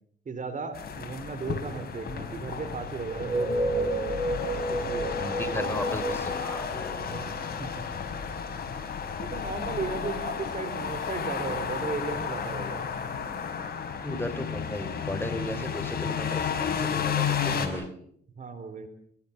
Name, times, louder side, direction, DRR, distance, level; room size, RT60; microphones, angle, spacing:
voice 1, 0.3-4.0 4.7-5.3 7.0-7.8 9.2-12.8 15.4-15.7 18.4-18.9, right 4 dB, 40° right, 12 dB, 4.0 m, -36 dB
sound 1, 0.7-17.7, left 7 dB, 50° left, 5.4 m, -32 dB
sound 2, 3.1-7.7, right 2 dB, 15° right, 6.4 m, -31 dB
voice 2, 5.2-7.2 14.0-17.1 17.4-17.9, left 1 dB, 10° left, 9 dB, 3.8 m, -35 dB
26.5 x 22.0 x 7.3 m, 0.67 s
cardioid pair, 90°, 20 cm